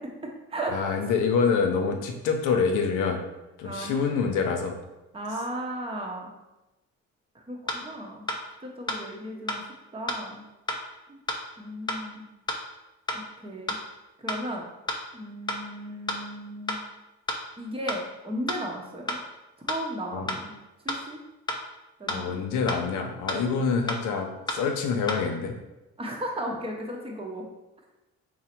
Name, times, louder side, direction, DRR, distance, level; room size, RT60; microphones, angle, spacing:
voice 1, 0.0-0.8 3.6-4.1 5.1-6.3 7.3-8.3 8.6-9.6 9.9-10.4 11.1-11.2 11.6-12.2 13.1-13.8 14.2-14.7 15.1-16.8 17.6-19.2 19.6-20.6 20.8-21.2 22.0-22.6 23.3-23.6 26.0-27.5, right 1 dB, 20° right, 0 dB, 0.7 m, -35 dB
voice 2, 0.7-3.2 3.6-4.7 20.1-20.3 22.1-25.5, left 5 dB, 85° left, 3 dB, 0.6 m, -26 dB
sound 1, 7.7-7.8 8.3-8.4 8.9-9.0 9.5-9.6 10.1-10.2 10.7-10.8 11.3-11.4 11.9-12.0 12.5-12.6 13.1-13.2 13.7-13.8 14.3-14.4 14.9-15.0 15.5-15.6 16.1-16.2 16.7-16.8 17.3-17.4 17.9-18.0 18.5-18.6 19.1-19.2 19.7-19.8 20.3-20.4 20.9-21.0 21.5-21.6 22.1-22.2 22.7-22.8 23.3-23.4 23.9-24.0 24.5-24.6 25.1-25.2, left 1 dB, 15° left, 0.4 m, -29 dB
3.9 x 2.1 x 4.3 m, 1.0 s
cardioid pair, 90°, 30 cm